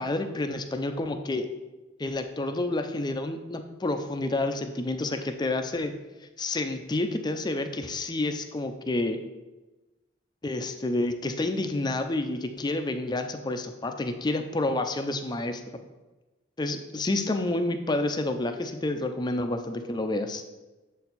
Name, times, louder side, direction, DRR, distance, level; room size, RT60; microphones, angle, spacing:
voice 1, 0.0-1.5 2.0-5.9 6.4-9.2 10.4-15.6 16.6-20.4, left 2 dB, 20° left, 7 dB, 0.5 m, -29 dB
7.2 x 4.4 x 4.1 m, 1.1 s
head